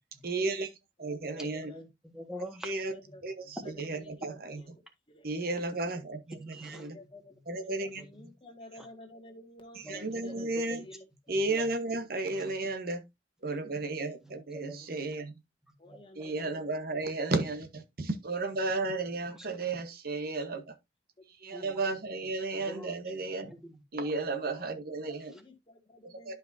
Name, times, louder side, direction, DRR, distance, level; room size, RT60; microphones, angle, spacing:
voice 1, 0.2-0.7 1.0-1.7 2.6-2.9 3.2-4.6 5.2-7.0 7.5-8.0 9.9-10.8 11.3-13.0 13.4-15.3 16.2-20.7 21.4-23.5 23.9-25.3 26.3-26.4, right 3 dB, 55° right, 1.1 m, -33 dB
voice 2, 1.0-1.7 2.7-3.2 3.6-4.8 5.1-5.3 6.7-11.1 15.0-15.1 15.8-16.7 25.3-26.4, left 1 dB, 30° left, 1.7 m, -52 dB
voice 3, 1.6-2.8 3.0-3.1 3.6-3.7 4.2-4.3 6.5-6.9 8.0-8.3 8.8-8.9 9.8-10.9 11.3-11.7 12.2-12.6 14.2-15.2 15.7-16.0 19.3-19.5 21.5-21.8 22.2-23.0 23.4-24.2 24.5-24.7, equal, 5° right, 1.6 m, -47 dB
11.5 x 5.2 x 2.7 m
head